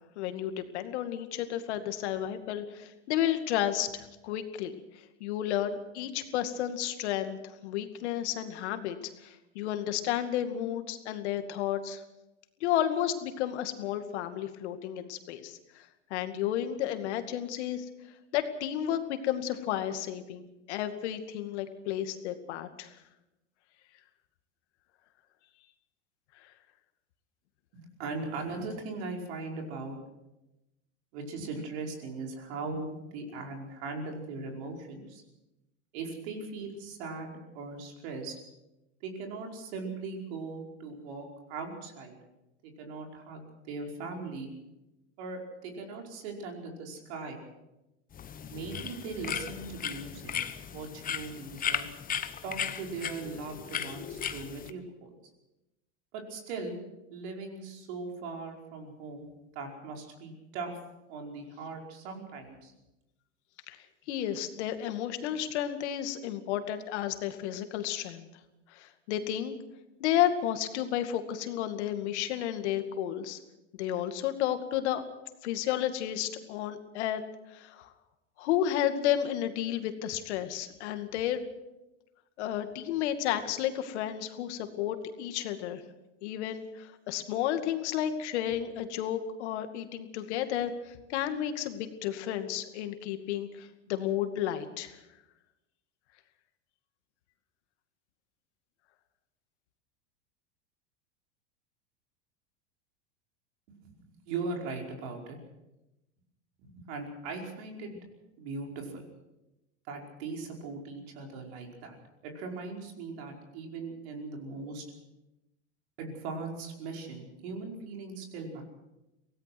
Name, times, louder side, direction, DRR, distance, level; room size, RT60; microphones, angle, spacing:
voice 1, 0.2-4.8 5.2-12.0 12.6-17.9 18.3-23.0 26.4-26.5 63.7-63.8 64.1-68.3 68.7-69.5 70.0-73.4 73.7-75.0 75.4-77.2 77.5-77.9 78.4-81.4 82.4-85.8 86.2-95.0, left 11 dB, 70° left, 8 dB, 2.3 m, -32 dB
voice 2, 27.7-30.0 31.1-35.2 35.9-38.4 39.0-42.2 42.6-44.5 45.2-47.4 48.5-50.3 50.7-51.9 52.4-55.2 56.1-56.8 57.1-60.8 61.1-62.7 103.8-105.4 106.6-108.0 108.4-109.1 109.9-112.0 112.2-114.8 116.0-118.6, right 3 dB, 65° right, 2 dB, 5.3 m, -39 dB
sound 1, 48.1-54.7, left 8 dB, 25° left, 1.1 m, -36 dB
24.5 x 17.5 x 6.1 m, 0.95 s
hypercardioid pair, 110°, 35 cm